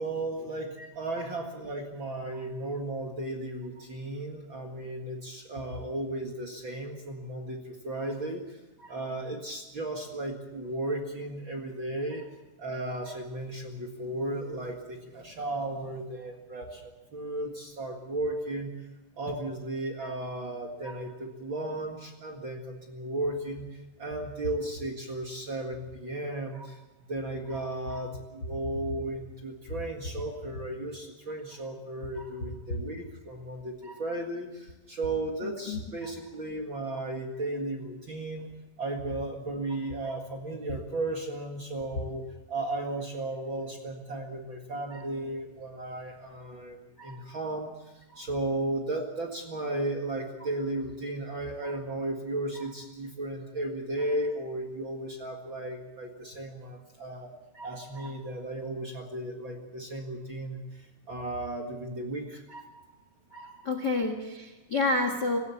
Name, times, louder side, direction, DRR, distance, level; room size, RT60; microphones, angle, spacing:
voice 1, 0.0-8.6 8.9-12.3 12.6-18.7 19.1-26.8 27.1-38.5 38.8-42.2 42.5-57.3 57.6-62.4, right 1 dB, 45° right, 2 dB, 1.6 m, -35 dB
voice 2, 35.4-35.8 44.9-45.0 47.0-47.2 48.1-48.2 57.6-57.7 57.9-58.1 62.5-62.6 63.3-65.4, left 2 dB, 55° left, 6 dB, 1.1 m, -31 dB
26.0 x 15.0 x 7.1 m, 1.1 s
omnidirectional pair, 4.9 m